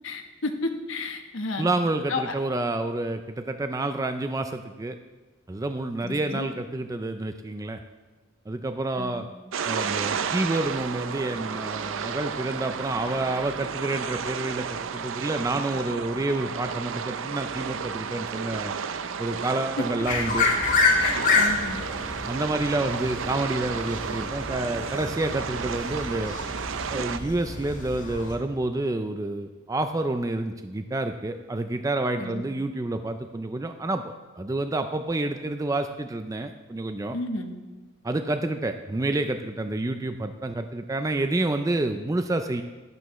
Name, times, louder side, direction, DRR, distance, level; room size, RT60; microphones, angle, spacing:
voice 1, 0.0-1.7 2.1-2.3 6.0-6.5 9.0-9.3 20.9-21.8 32.2-32.4 37.1-37.5, left 2 dB, 85° left, 5 dB, 1.1 m, -32 dB
voice 2, 1.6-5.0 5.5-7.8 8.5-9.3 9.7-14.7 14.9-18.7 19.2-20.5 22.3-26.4 26.9-37.2 38.0-42.6, right 2 dB, 15° right, 8 dB, 0.4 m, -28 dB
sound 1, 9.5-27.2, right 6 dB, 85° right, 0.5 m, -32 dB
sound 2, 20.0-28.4, left 3 dB, 40° left, 1.7 m, -28 dB
12.0 x 11.5 x 3.1 m, 1.3 s
head